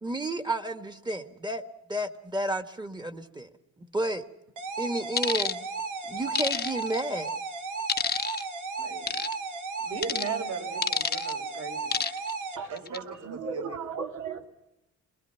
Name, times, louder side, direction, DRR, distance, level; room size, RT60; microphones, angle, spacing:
voice 1, 0.0-1.6 1.9-3.5 3.8-4.2 4.8-5.7 6.1-7.3, right 1 dB, 15° right, 8 dB, 1.8 m, -31 dB
sound 1, 4.6-12.6, right 4 dB, 90° right, 2.8 m, -35 dB
sound 2, 5.2-5.5 6.3-7.0 7.9-8.4 9.1-9.3 10.0-10.3 10.8-11.3 11.9-12.3 12.8-13.0, left 6 dB, 30° left, 1.0 m, -28 dB
voice 2, 8.8-9.1 9.8-11.9 12.7-13.8, right 5 dB, 50° right, 5 dB, 5.5 m, -38 dB
voice 3, 12.6-14.5, right 5 dB, 75° right, 3 dB, 3.5 m, -36 dB
26.5 x 21.5 x 5.9 m, 0.89 s
cardioid pair, 90°, 30 cm